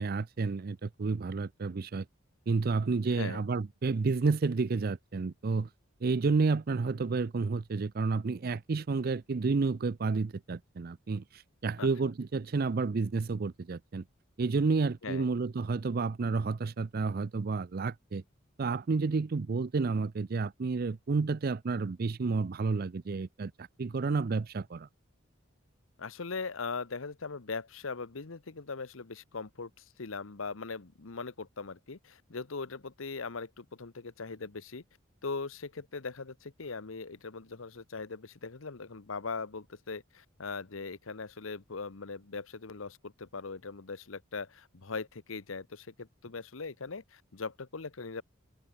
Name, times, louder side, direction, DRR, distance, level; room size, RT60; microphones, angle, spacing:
voice 1, 0.0-2.0 2.5-5.7 6.0-14.0 14.4-18.2 18.6-24.9, right 4 dB, 50° right, 0.5 m, -30 dB
voice 2, 3.1-3.4 11.8-11.9 15.0-15.3 26.0-34.8 35.2-48.2, left 4 dB, 85° left, 1.0 m, -40 dB
open air
head